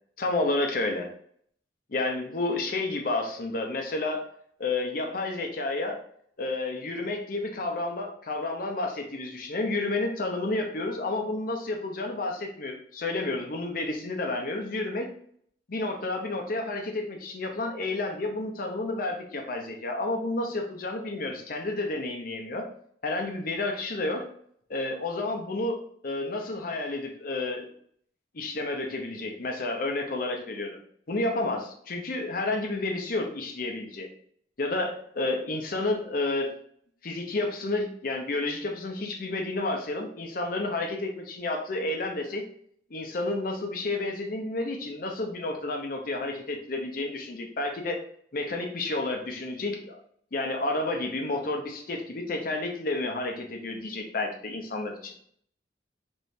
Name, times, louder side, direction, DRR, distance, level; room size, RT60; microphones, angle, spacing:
voice 1, 0.2-1.1 1.9-4.3 4.6-6.0 6.4-15.1 15.7-22.7 23.0-24.2 24.7-27.7 28.3-30.8 31.1-34.1 34.6-36.5 37.0-42.4 42.9-48.0 48.3-50.0 50.3-55.1, left 2 dB, 50° left, 3 dB, 0.6 m, -30 dB
3.7 x 3.0 x 2.6 m, 0.64 s
head